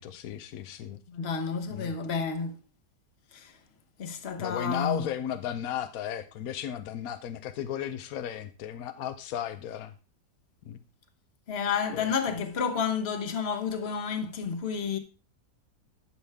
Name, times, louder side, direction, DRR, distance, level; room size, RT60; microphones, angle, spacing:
voice 1, 0.0-1.0 1.7-1.9 4.4-9.9 10.6-10.8 11.9-12.1, left 10 dB, 65° left, 0.9 m, -35 dB
voice 2, 1.1-2.6 3.3-3.6 4.0-5.1 11.5-15.0, left 6 dB, 40° left, 1.1 m, -30 dB
12.5 x 7.1 x 3.4 m
omnidirectional pair, 2.0 m